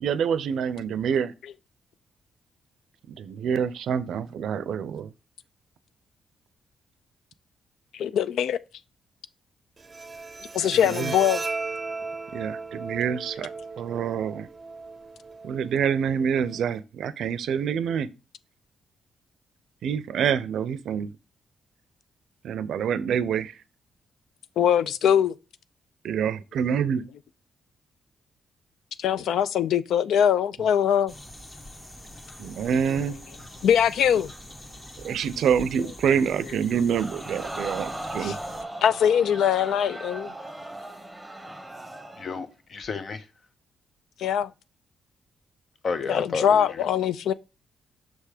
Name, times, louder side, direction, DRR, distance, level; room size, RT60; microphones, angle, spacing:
voice 1, 0.0-1.3 3.1-5.1 10.9-11.1 12.3-13.5 13.8-14.5 15.4-18.1 19.8-21.1 22.4-23.5 26.0-27.0 32.4-33.2 35.0-38.4, right 7 dB, 80° right, 0.5 m, -26 dB
voice 2, 7.9-8.6 10.5-11.4 24.6-25.3 29.0-31.1 33.6-34.3 38.2-38.4 38.8-40.3 44.2-44.5 46.0-47.3, left 9 dB, 80° left, 0.3 m, -22 dB
Bowed string instrument, 9.8-16.8, right 3 dB, 30° right, 0.6 m, -36 dB
sound 1, 31.1-38.6, left 1 dB, 25° left, 1.1 m, -44 dB
Crowd, 36.9-42.4 42.8-42.9, right 1 dB, ahead, 1.1 m, -38 dB
voice 3, 42.2-43.2 45.8-46.8, left 4 dB, 55° left, 0.7 m, -31 dB
6.3 x 3.4 x 4.9 m
cardioid pair, 90°, 0 cm